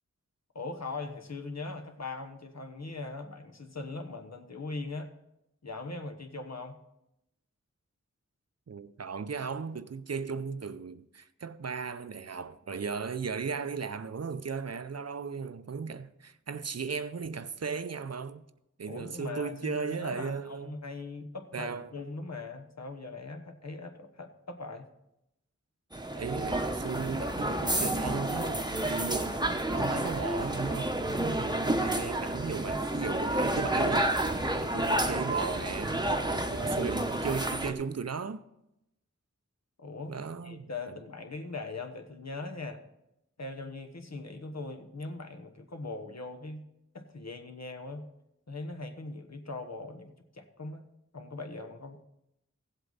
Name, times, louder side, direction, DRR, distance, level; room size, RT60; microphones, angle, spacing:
voice 1, 0.5-5.1 5.6-6.8 18.9-24.9 34.4-34.8 39.8-42.8 43.4-46.7 46.9-48.1 48.5-50.8 51.1-52.0, left 3 dB, 60° left, 1.2 m, -40 dB
voice 2, 8.7-18.4 18.8-20.8 21.5-21.9 26.2-29.4 29.7-34.1 34.6-38.4 40.1-41.0, right 5 dB, 55° right, 0.6 m, -36 dB
sound 1, 25.9-37.7, right 1 dB, 15° right, 0.9 m, -30 dB
16.0 x 7.9 x 4.0 m
wide cardioid pair, 55°, 30 cm